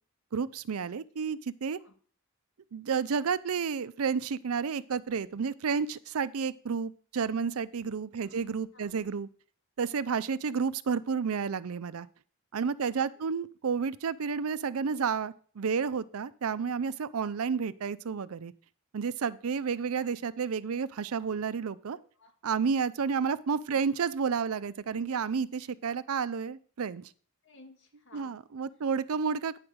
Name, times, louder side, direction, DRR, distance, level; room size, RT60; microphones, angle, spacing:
voice 1, 0.3-1.8 2.7-9.3 9.8-12.1 12.5-18.5 18.9-22.0 22.4-27.1 28.1-29.6, right 6 dB, 80° right, 17 dB, 0.5 m, -31 dB
voice 2, 21.9-22.3 23.7-23.8 27.4-28.4, left 2 dB, 55° left, 3 dB, 2.1 m, -56 dB
9.6 x 5.1 x 6.2 m, 0.43 s
head